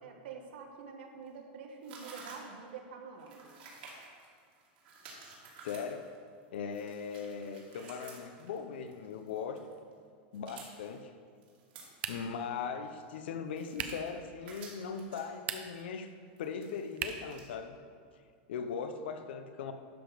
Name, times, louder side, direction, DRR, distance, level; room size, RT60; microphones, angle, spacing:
voice 1, 0.0-3.5, right 5 dB, 85° right, 3 dB, 1.3 m, -47 dB
sound 1, 1.3-1.4 1.8-2.6 3.1-6.2 6.5-9.9 10.3-11.0 11.4-12.3 12.6-12.7 13.0-14.2 14.4-15.2 15.5-15.7 16.0-17.5, right 4 dB, 65° right, 2.4 m, -52 dB
voice 2, 5.6-6.1 6.5-9.7 10.3-11.1 12.1-16.1 16.4-17.8 18.5-19.7, left 6 dB, 85° left, 8 dB, 0.8 m, -39 dB
sound 2, 12.0-12.5 13.7-14.1 15.3-15.9 17.0-17.4, right 8 dB, 25° right, 0.4 m, -39 dB
12.0 x 5.1 x 5.1 m, 2.1 s
supercardioid pair, 175°, 6 cm